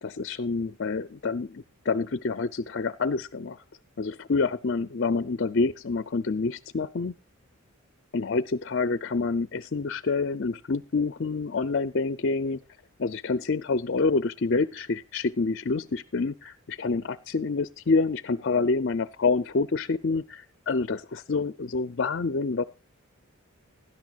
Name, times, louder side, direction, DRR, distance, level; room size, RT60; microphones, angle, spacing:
voice 1, 0.0-3.6 4.0-7.1 8.1-12.6 13.0-22.6, left 4 dB, 50° left, 15 dB, 0.5 m, -27 dB
17.0 x 12.0 x 2.4 m, 0.33 s
head